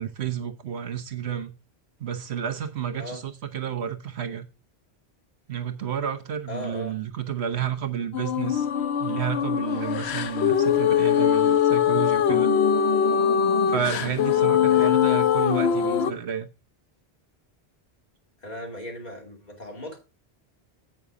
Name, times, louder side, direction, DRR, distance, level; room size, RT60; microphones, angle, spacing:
voice 1, 0.0-1.5 2.0-4.5 5.5-8.7 9.0-12.5 13.7-16.5, right 9 dB, 85° right, 1.3 m, -31 dB
voice 2, 6.5-7.0 14.6-14.9 18.4-20.0, left 1 dB, 40° left, 3.0 m, -37 dB
sound 1, 8.1-16.1, left 8 dB, 85° left, 0.9 m, -22 dB
8.4 x 6.0 x 4.9 m
omnidirectional pair, 1.1 m